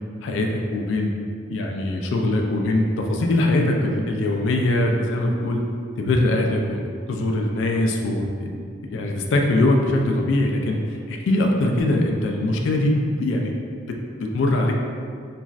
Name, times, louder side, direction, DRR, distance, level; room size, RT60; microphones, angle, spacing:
voice 1, 0.2-1.1 1.5-5.6 6.0-8.5 8.8-10.8 11.1-13.5 14.2-14.8, left 1 dB, 80° left, 1 dB, 0.3 m, -22 dB
3.0 x 2.4 x 2.4 m, 2.2 s
head